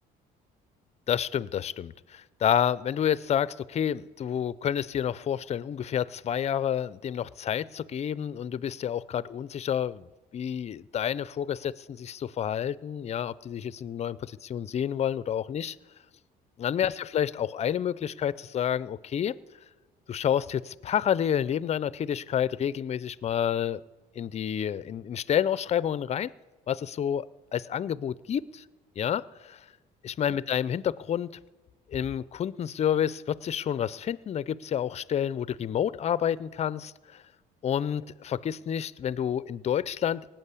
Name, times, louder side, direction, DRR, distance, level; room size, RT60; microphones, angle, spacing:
voice 1, 1.1-10.1 10.3-15.8 16.6-19.3 20.1-23.8 24.1-26.3 26.7-27.3 27.5-28.6 29.0-29.6 30.0-31.3 31.9-37.2 37.6-40.3, left 9 dB, 40° left, 19 dB, 0.5 m, -29 dB
18.5 x 9.0 x 8.3 m, 1.2 s
cardioid pair, 110°, 17 cm